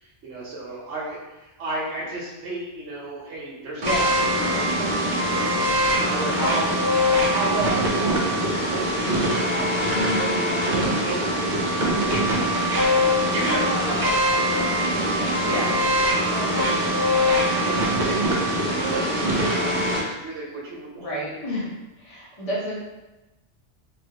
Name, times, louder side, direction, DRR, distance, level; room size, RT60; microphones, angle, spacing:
voice 1, 0.0-4.9 5.1-6.6 6.9-7.0 7.3-12.6 13.3-17.2 17.6-21.1, right 2 dB, 70° right, -5 dB, 1.0 m, -33 dB
voice 2, 3.8-4.1 6.5-6.6 9.9-10.3 15.4-15.7 21.0-21.7 22.0-22.8, equal, 30° left, -7 dB, 0.9 m, -29 dB
sound 1, 3.8-20.0, equal, 50° right, 0.6 m, -22 dB
3.2 x 2.4 x 2.7 m, 1.0 s
omnidirectional pair, 1.3 m